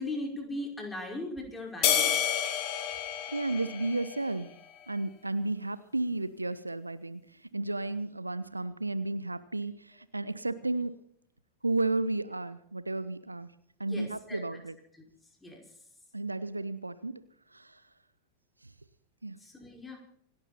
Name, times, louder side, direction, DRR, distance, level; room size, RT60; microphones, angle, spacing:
voice 1, 0.0-2.5 13.8-14.4 15.4-15.6 19.4-20.0, left 2 dB, 10° left, 1 dB, 5.1 m, -39 dB
sound 1, 1.8-4.4, left 9 dB, 40° left, 3.2 m, -29 dB
voice 2, 3.3-4.5 4.9-7.2 7.5-10.9 11.6-13.5 13.8-14.8 16.1-17.2 17.5-17.8 19.2-19.4, right 2 dB, 85° right, 15 dB, 0.9 m, -33 dB
27.5 x 12.0 x 4.2 m, 0.66 s
figure-of-eight pair, 90°, 0 cm